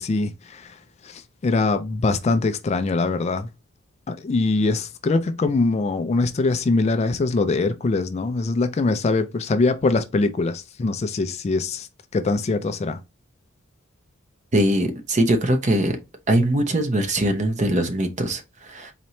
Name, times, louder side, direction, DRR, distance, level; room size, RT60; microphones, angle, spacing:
voice 1, 0.0-3.5 4.1-11.9 12.1-13.0, left 3 dB, 30° left, 0.3 m, -23 dB
voice 2, 14.5-16.0 16.3-18.9, right 1 dB, 35° right, 0.8 m, -21 dB
4.2 x 2.8 x 3.1 m
head